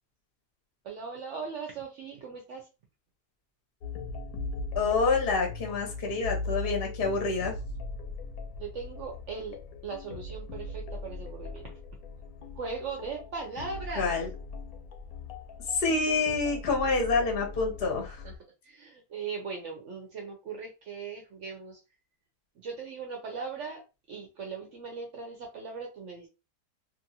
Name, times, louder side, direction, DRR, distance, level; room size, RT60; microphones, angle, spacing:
voice 1, 0.8-2.7 8.6-9.6 9.8-11.8 12.5-14.2 18.2-18.3 18.6-21.8 22.6-23.8 24.1-26.3, right 5 dB, 65° right, 1 dB, 0.8 m, -39 dB
sound 1, 3.8-18.4, left 3 dB, 70° left, 1.0 m, -39 dB
voice 2, 4.7-7.5 14.0-14.3 15.7-18.2, left 4 dB, 50° left, 2 dB, 0.7 m, -27 dB
2.9 x 2.4 x 2.7 m, 0.28 s
omnidirectional pair, 1.7 m